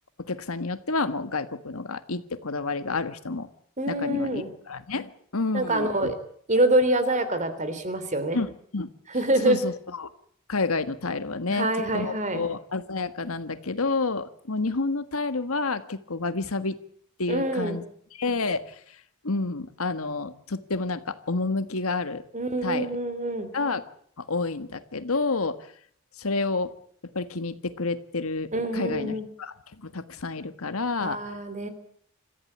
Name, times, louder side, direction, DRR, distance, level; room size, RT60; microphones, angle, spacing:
voice 1, 0.2-3.5 3.9-6.1 8.3-8.9 9.4-10.1 10.5-11.7 11.9-16.8 17.2-17.8 18.1-19.0 19.2-22.2 22.6-22.9 23.5-23.8 24.2-25.7 26.2-26.7 27.1-31.2, left 3 dB, 80° left, 11 dB, 1.6 m, -29 dB
voice 2, 3.8-4.5 5.5-6.1 6.5-8.4 9.1-9.6 11.5-12.4 17.3-17.8 22.3-23.5 28.5-29.3 31.0-31.7, right 1 dB, 35° right, 11 dB, 3.2 m, -25 dB
26.5 x 14.5 x 8.6 m, 0.63 s
head